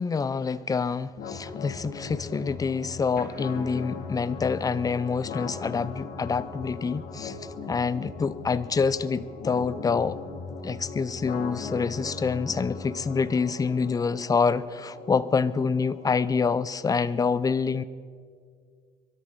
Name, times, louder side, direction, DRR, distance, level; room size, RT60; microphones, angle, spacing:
voice 1, 0.0-7.4 7.7-10.2 10.6-17.8, left 5 dB, 20° left, 16 dB, 0.5 m, -26 dB
sound 1, 1.2-17.2, left 4 dB, 65° left, 2.3 m, -39 dB
23.0 x 13.0 x 3.8 m, 2.1 s
cardioid pair, 110°, 17 cm